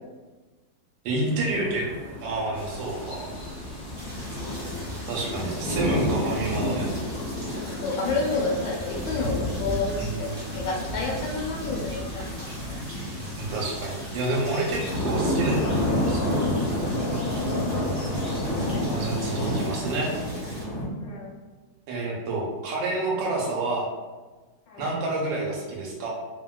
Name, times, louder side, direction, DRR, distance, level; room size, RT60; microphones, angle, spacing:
voice 1, 1.0-1.9 2.2-3.3 5.0-6.9 10.0-10.6 13.4-16.3 18.9-20.1 21.9-23.9 24.8-26.1, right 2 dB, 85° right, -1 dB, 1.3 m, -29 dB
sound 1, 1.3-20.8, left 1 dB, 30° left, 0.9 m, -30 dB
sound 2, 2.5-19.6, equal, 45° left, 1.1 m, -45 dB
sound 3, 3.9-20.6, equal, 40° right, 0.8 m, -44 dB
voice 2, 7.8-12.8 21.0-21.4 24.7-24.9, left 3 dB, 80° left, -2 dB, 1.4 m, -30 dB
2.8 x 2.8 x 2.2 m, 1.2 s
omnidirectional pair, 2.0 m